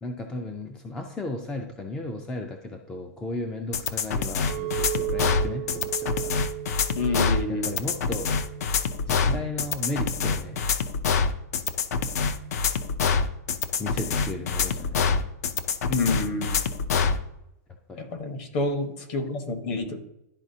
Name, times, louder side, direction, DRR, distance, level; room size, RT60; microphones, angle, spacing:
voice 1, 0.0-6.4 7.5-8.3 9.1-10.6 13.8-15.2 17.9-18.1, left 2 dB, 5° left, 4 dB, 0.3 m, -35 dB
sound 1, 3.7-17.2, left 5 dB, 65° left, 0.5 m, -25 dB
Chink clink, 4.5-8.8 9.3-9.7, right 17 dB, 85° right, 0.7 m, -35 dB
voice 2, 7.0-7.7 9.2-9.4 15.9-16.6 18.0-20.0, left 2 dB, 40° left, 6 dB, 1.0 m, -28 dB
11.5 x 4.0 x 2.7 m, 0.84 s
supercardioid pair, 165°, 9 cm